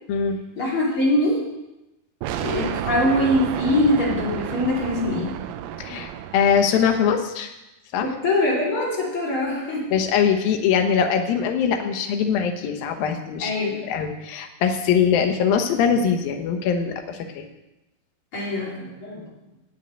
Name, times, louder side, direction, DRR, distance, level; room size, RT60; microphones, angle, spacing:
voice 1, 0.5-1.5 2.4-5.4 8.0-9.9 13.4-13.9 18.3-19.3, left 1 dB, 40° left, -4 dB, 3.1 m, -23 dB
sound 1, 2.2-7.1, right 11 dB, 80° right, 2.3 m, -31 dB
voice 2, 5.8-7.5 7.9-8.1 9.9-13.5 13.9-17.5, left 7 dB, 80° left, 5 dB, 2.8 m, -22 dB
9.2 x 7.3 x 8.7 m, 0.96 s
omnidirectional pair, 4.2 m